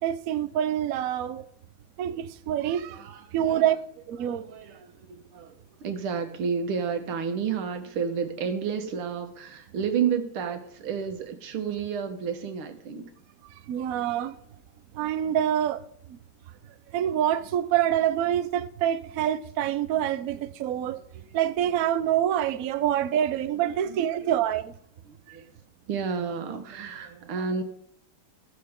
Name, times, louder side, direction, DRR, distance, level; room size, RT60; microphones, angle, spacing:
voice 1, 0.0-1.4 2.0-3.1 3.3-3.8 4.1-4.5 13.7-14.3 14.9-15.8 16.1-16.2 16.9-21.0 21.3-24.7 25.3-25.4, right 10 dB, 65° right, 0.9 m, -26 dB
voice 2, 2.9-3.7 4.2-13.1 21.3-21.4 23.5-24.0 25.1-25.5 25.9-27.6, right 6 dB, 85° right, 2.1 m, -31 dB
19.5 x 6.8 x 3.7 m
omnidirectional pair, 2.3 m